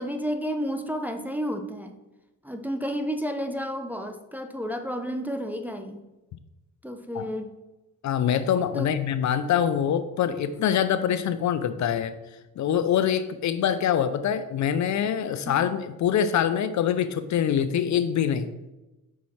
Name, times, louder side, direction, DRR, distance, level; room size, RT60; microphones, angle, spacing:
voice 1, 0.0-2.0 2.4-6.0 6.8-7.5 8.7-8.9 15.4-15.6, equal, 5° right, 5 dB, 0.5 m, -31 dB
voice 2, 8.0-12.1 12.6-18.5, left 9 dB, 50° left, 12 dB, 0.5 m, -24 dB
5.6 x 4.8 x 4.2 m, 1.0 s
cardioid pair, 90°, 38 cm